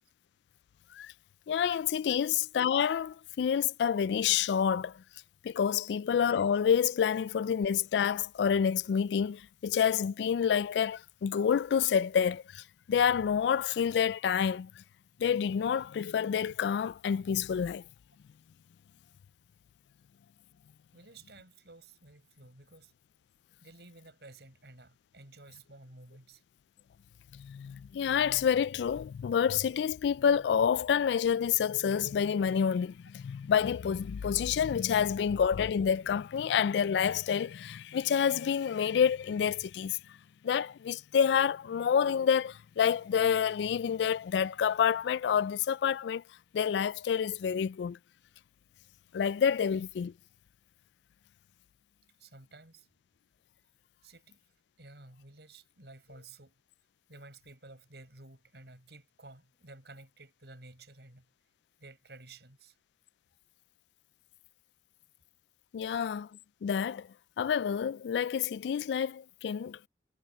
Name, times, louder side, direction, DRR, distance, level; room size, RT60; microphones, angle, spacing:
voice 1, 1.5-5.0 5.4-14.7 15.2-17.8 27.3-40.0 40.4-46.2 46.5-48.0 49.1-50.1 65.7-66.3 66.6-67.1 67.4-69.9, left 7 dB, 85° left, 0.3 m, -28 dB
voice 2, 20.9-22.9 23.6-26.4 52.2-52.9 54.0-54.4 54.8-56.6 57.1-61.2 61.8-62.8 65.9-66.1, right 2 dB, 75° right, 5.1 m, -53 dB
head